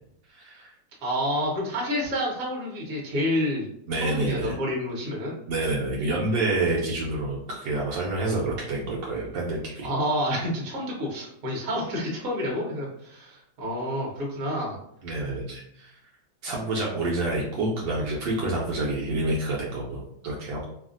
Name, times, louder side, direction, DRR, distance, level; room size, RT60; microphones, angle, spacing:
voice 1, 0.3-0.7 3.9-4.6 5.5-9.9 15.0-15.9 16.4-20.7, right 2 dB, 75° right, -4 dB, 1.3 m, -28 dB
voice 2, 1.0-3.7 4.0-5.4 9.8-14.8, equal, 55° right, -3 dB, 1.3 m, -29 dB
3.3 x 2.4 x 2.5 m, 0.74 s
omnidirectional pair, 2.0 m